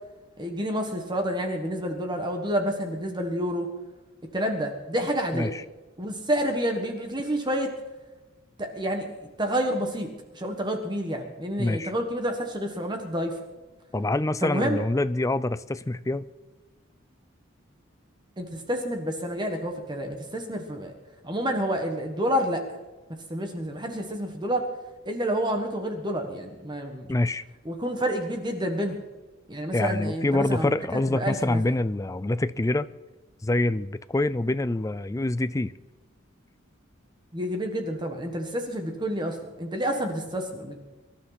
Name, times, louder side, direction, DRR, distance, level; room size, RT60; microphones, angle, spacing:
voice 1, 0.4-3.7 4.3-5.5 6.0-7.7 8.6-9.1 9.4-10.1 10.3-13.3 14.4-14.8 18.4-20.9 21.2-22.6 23.3-24.7 25.0-27.1 27.6-29.0 29.5-31.6 37.3-40.7, equal, 20° right, 4 dB, 1.6 m, -29 dB
voice 2, 5.3-5.6 11.6-11.9 13.9-16.3 27.1-27.4 29.7-32.9 33.4-35.7, left 2 dB, 15° left, 14 dB, 0.4 m, -26 dB
24.5 x 12.0 x 4.1 m, 1.2 s
head